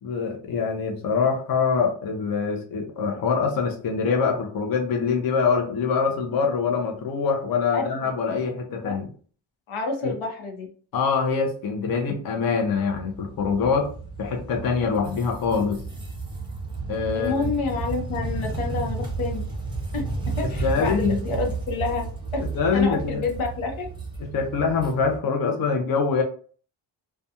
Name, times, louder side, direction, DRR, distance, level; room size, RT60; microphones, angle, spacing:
voice 1, 0.0-9.1 10.0-10.1 10.9-13.9 14.2-15.8 16.9-17.5 20.6-21.2 22.5-23.2 24.3-26.2, left 5 dB, 50° left, 3 dB, 0.6 m, -24 dB
voice 2, 7.7-8.1 8.7-9.0 9.7-10.7 17.1-19.4 19.9-20.0 20.4-22.1 22.3-22.4 22.7-23.9, left 4 dB, 85° left, 2 dB, 0.9 m, -29 dB
sound 1, 12.7-25.2, right 4 dB, 10° right, 0.6 m, -32 dB
2.4 x 2.2 x 2.7 m, 0.43 s
wide cardioid pair, 135°, 47 cm